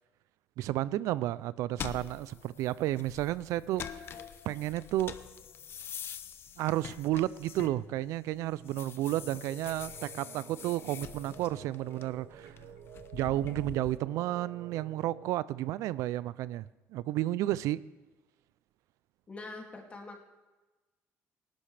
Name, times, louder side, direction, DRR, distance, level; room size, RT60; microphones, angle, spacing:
voice 1, 0.6-4.1 4.5-5.2 6.6-12.6 13.1-16.6 16.9-17.8, right 15 dB, 85° right, 19 dB, 0.4 m, -32 dB
sound 1, 1.8-8.2 8.5-14.0, left 8 dB, 45° left, 0.7 m, -45 dB
sound 2, 9.1-15.3, right 8 dB, 60° right, 0.9 m, -50 dB
voice 2, 19.3-20.2, left 3 dB, 25° left, 1 dB, 2.4 m, -44 dB
19.5 x 11.5 x 3.4 m, 1.2 s
cardioid pair, 130°, 5 cm